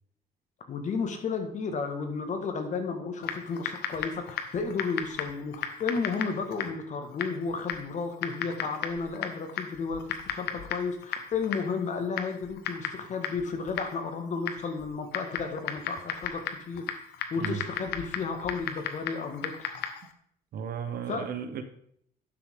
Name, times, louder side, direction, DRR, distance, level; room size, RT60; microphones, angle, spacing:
voice 1, 0.7-17.0 17.3-19.7 21.1-21.3, left 5 dB, 45° left, 5 dB, 1.8 m, -33 dB
Typing, 3.2-20.1, left 8 dB, 75° left, 1.1 m, -37 dB
voice 2, 20.5-21.6, right 7 dB, 65° right, 9 dB, 1.1 m, -34 dB
11.5 x 6.5 x 3.8 m, 0.68 s
cardioid pair, 110°, 17 cm